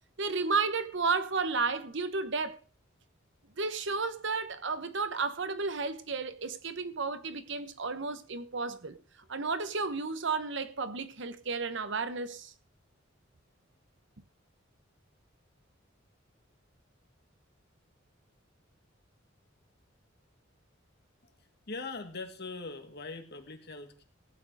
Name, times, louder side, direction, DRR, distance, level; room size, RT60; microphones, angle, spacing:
voice 1, 0.2-2.6 3.6-9.0 9.3-12.5, right 4 dB, 65° right, 1.1 m, -32 dB
voice 2, 21.7-24.0, left 3 dB, 55° left, 2.1 m, -41 dB
16.0 x 8.8 x 4.9 m
head